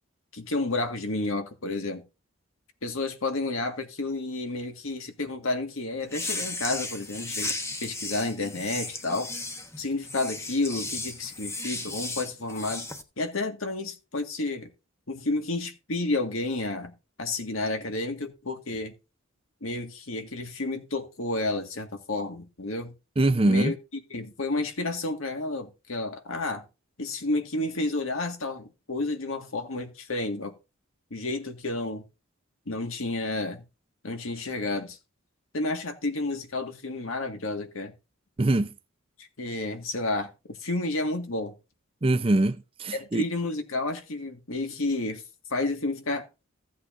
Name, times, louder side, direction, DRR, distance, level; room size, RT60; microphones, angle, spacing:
voice 1, 0.3-2.0 2.8-9.3 9.8-12.9 13.2-14.7 15.1-16.9 17.2-18.9 19.6-22.9 23.4-23.8 24.1-26.7 27.0-30.5 31.1-32.0 32.7-33.6 34.0-35.0 35.5-37.9 39.4-41.5 42.9-45.2 45.5-46.2, left 2 dB, 75° left, 1.8 m, -31 dB
sound 1, 6.0-13.0, left 2 dB, 15° left, 1.0 m, -35 dB
voice 2, 23.2-23.7 38.4-38.7 42.0-43.2, right 2 dB, 25° right, 0.6 m, -23 dB
15.5 x 8.3 x 2.6 m
head